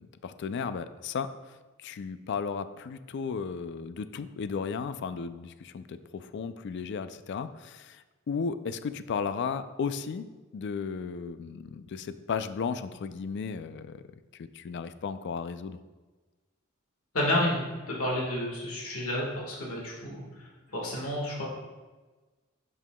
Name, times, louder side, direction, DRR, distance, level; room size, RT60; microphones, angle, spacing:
voice 1, 0.2-1.3 1.8-14.0 14.4-15.8, left 5 dB, 55° left, 12 dB, 0.3 m, -34 dB
voice 2, 17.1-21.4, left 1 dB, 90° left, -3 dB, 1.6 m, -31 dB
11.0 x 5.5 x 2.2 m, 1.3 s
head